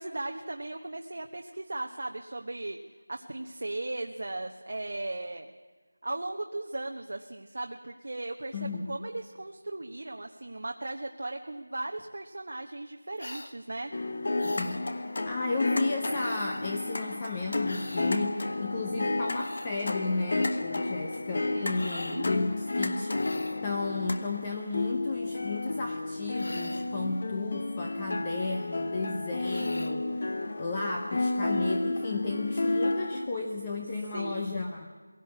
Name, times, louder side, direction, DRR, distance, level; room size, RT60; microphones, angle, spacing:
voice 1, 0.0-2.8 3.1-5.5 6.0-13.9 21.5-22.3 34.1-34.5, right 2 dB, 50° right, 3 dB, 1.2 m, -37 dB
voice 2, 8.5-9.0 14.4-34.9, left 3 dB, 15° left, 1 dB, 0.9 m, -34 dB
sound 1, 13.2-13.5 14.4-14.8 16.1-16.7 17.6-18.1 19.1-19.7 21.7-22.2 23.1-23.7 26.3-27.0 29.4-30.0, left 1 dB, 60° left, 1.8 m, -43 dB
sound 2, 13.9-33.3, left 2 dB, 35° left, 1.3 m, -32 dB
21.5 x 17.0 x 8.5 m, 1.5 s
figure-of-eight pair, 175°, 0 cm